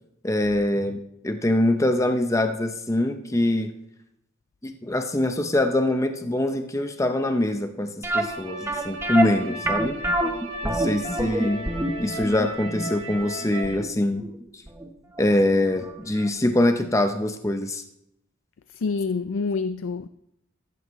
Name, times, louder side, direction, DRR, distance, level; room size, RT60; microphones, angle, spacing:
voice 1, 0.2-1.0 1.2-3.7 4.6-10.0 10.6-11.7 12.0-14.3 15.2-17.8, left 1 dB, 15° left, 0.6 m, -24 dB
sound 1, 8.0-14.9 15.2-15.3 15.8-16.0 16.3-16.4, right 1 dB, 15° right, 1.0 m, -27 dB
sound 2, 8.1-13.7, right 1 dB, 85° right, 4.5 m, -36 dB
voice 2, 18.7-20.1, left 4 dB, 85° left, 0.4 m, -27 dB
14.5 x 14.0 x 3.1 m
head